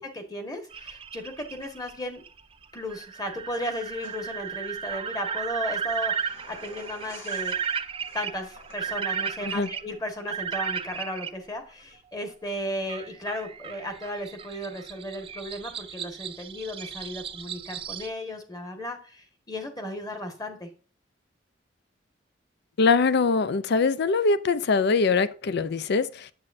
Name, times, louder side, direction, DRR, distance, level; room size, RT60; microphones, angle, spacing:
voice 1, 0.0-2.2 2.7-7.5 8.1-20.7, equal, 20° left, 1.4 m, -35 dB
sound 1, 0.7-11.3 12.9-18.1, right 7 dB, 30° right, 0.4 m, -35 dB
sound 2, 4.0-9.5, left 2 dB, 85° left, 3.1 m, -51 dB
voice 2, 22.8-26.3, left 4 dB, 60° left, 0.5 m, -23 dB
7.9 x 7.6 x 2.6 m
head